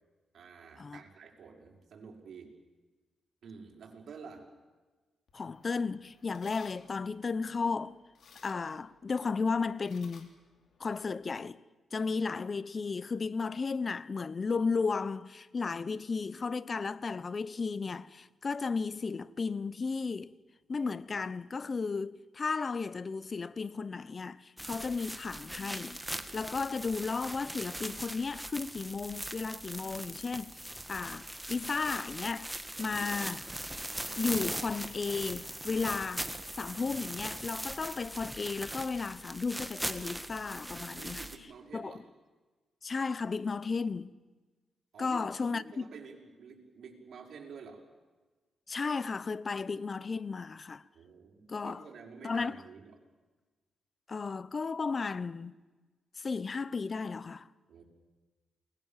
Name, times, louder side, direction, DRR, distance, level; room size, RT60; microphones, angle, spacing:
voice 1, 0.3-2.5 3.4-4.5 40.9-42.0 44.9-45.2 45.5-47.8 50.9-53.0 57.7-57.8, right 5 dB, 65° right, 6.0 m, -49 dB
sound 1, 5.3-11.3, left 6 dB, 65° left, 3.4 m, -61 dB
voice 2, 5.3-8.0 8.4-10.3 10.8-11.6 11.9-20.3 20.7-26.0 26.3-30.6 30.9-32.5 32.8-33.5 34.2-36.3 36.6-41.2 41.7-42.0 42.8-44.1 45.0-45.9 48.7-50.8 51.5-51.8 52.2-52.6 54.1-55.5 56.2-57.5, left 4 dB, 40° left, 0.9 m, -34 dB
sound 2, 24.6-41.4, right 1 dB, 5° right, 1.9 m, -40 dB
29.5 x 21.5 x 7.5 m
cardioid pair, 85°, 0 cm